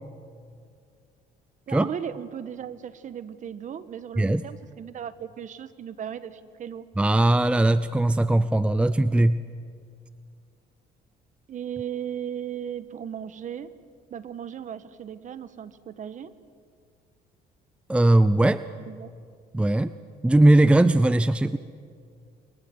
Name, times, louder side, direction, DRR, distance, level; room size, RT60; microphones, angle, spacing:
voice 1, 1.7-6.9 11.5-13.7 14.1-16.3 18.8-19.1, right 9 dB, 50° right, 13 dB, 1.4 m, -36 dB
voice 2, 7.0-9.4 17.9-18.6 19.5-19.9 20.2-21.6, right 1 dB, 5° right, 13 dB, 0.6 m, -19 dB
29.5 x 23.0 x 7.9 m, 2.2 s
cardioid pair, 110°, 17 cm